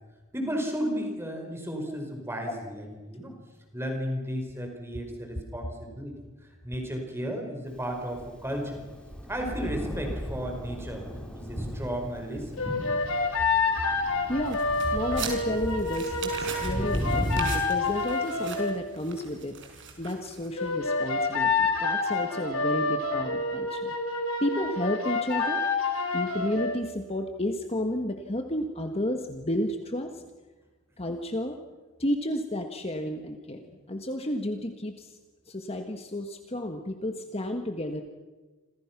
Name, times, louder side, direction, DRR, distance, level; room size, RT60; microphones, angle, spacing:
voice 1, 0.3-3.3 3.7-6.1 6.4-8.8 9.3-11.1 11.3-12.6, equal, 10° right, 3 dB, 5.0 m, -34 dB
Thunder, 7.9-17.4, equal, 5° left, 3.4 m, -36 dB
sound 1, 12.6-18.8 20.6-26.8, left 3 dB, 65° left, 4.8 m, -28 dB
voice 2, 14.3-14.6 14.9-19.5 20.0-25.6 26.1-30.2 31.0-31.6 32.0-35.2 35.5-38.0, left 1 dB, 25° left, 5 dB, 1.5 m, -32 dB
sound 2, 14.5-20.7, right 6 dB, 55° right, 5.2 m, -41 dB
29.0 x 26.5 x 6.0 m, 1.2 s
head